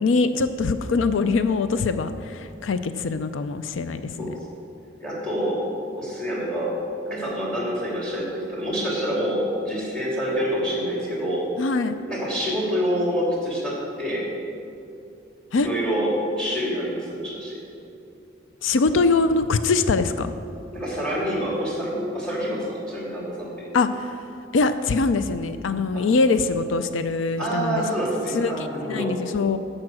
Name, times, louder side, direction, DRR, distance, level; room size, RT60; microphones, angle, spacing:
voice 1, 0.0-4.3 11.6-11.9 15.5-15.7 18.6-20.3 23.7-24.2 24.5-27.8 28.3-29.6, left 4 dB, 85° left, 11 dB, 0.4 m, -23 dB
voice 2, 5.0-5.6 5.9-6.7 7.1-11.5 12.1-14.3 15.5-16.1 16.4-17.6 20.7-23.7 25.9-26.1 27.4-29.1, equal, 5° left, -4 dB, 3.0 m, -27 dB
10.5 x 7.5 x 6.3 m, 2.6 s
head